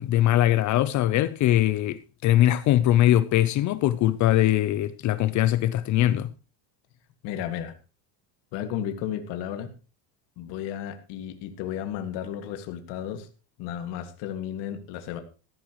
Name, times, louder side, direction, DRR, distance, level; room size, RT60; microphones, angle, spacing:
voice 1, 0.0-6.3, left 13 dB, 40° left, 0.6 m, -21 dB
voice 2, 7.2-7.7 8.5-9.7 10.4-13.3 13.6-15.2, left 10 dB, 65° left, 2.2 m, -33 dB
15.0 x 13.5 x 3.1 m
cardioid pair, 160°, 46 cm